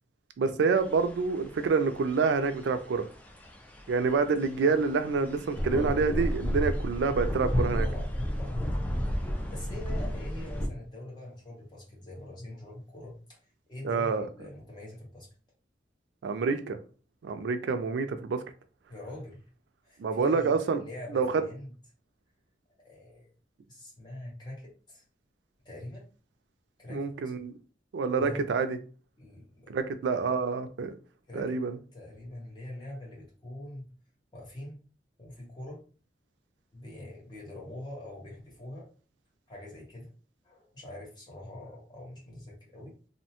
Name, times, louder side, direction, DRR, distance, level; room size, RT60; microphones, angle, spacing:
voice 1, 0.4-3.1 3.9-7.9 13.8-14.3 16.2-16.8 17.2-18.4 20.0-20.8 21.1-21.3 26.9-27.5 27.9-28.8 29.7-30.9 31.3-31.8, right 4 dB, 85° right, 0.3 m, -27 dB
sound 1, 0.8-10.7, equal, 10° left, 0.4 m, -33 dB
voice 2, 9.5-13.4 13.7-15.3 18.9-19.4 19.8-21.7 22.8-23.3 23.7-25.0 25.6-26.1 26.8-27.1 28.2-28.5 29.2-29.7 31.3-31.6 31.9-33.9 34.3-34.8 35.2-35.8 36.7-38.9 39.5-40.1 40.4-42.9, left 1 dB, 25° left, 1.0 m, -44 dB
2.7 x 2.1 x 2.8 m
head